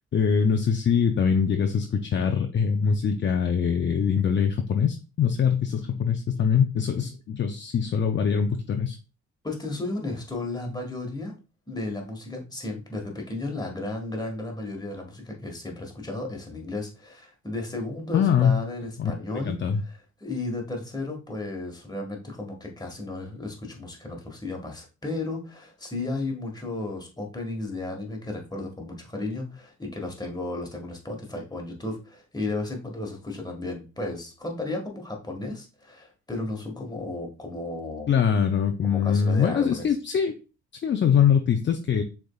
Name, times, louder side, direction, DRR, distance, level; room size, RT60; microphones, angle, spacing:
voice 1, 0.1-9.0 18.1-18.6 19.0-19.8 38.1-40.3 40.8-42.0, left 7 dB, 40° left, 5 dB, 0.5 m, -23 dB
voice 2, 9.4-11.3 11.7-19.6 19.9-38.1 38.8-39.8, left 2 dB, 15° left, 1 dB, 1.6 m, -34 dB
6.3 x 3.5 x 2.3 m, 0.31 s
cardioid pair, 90°, 30 cm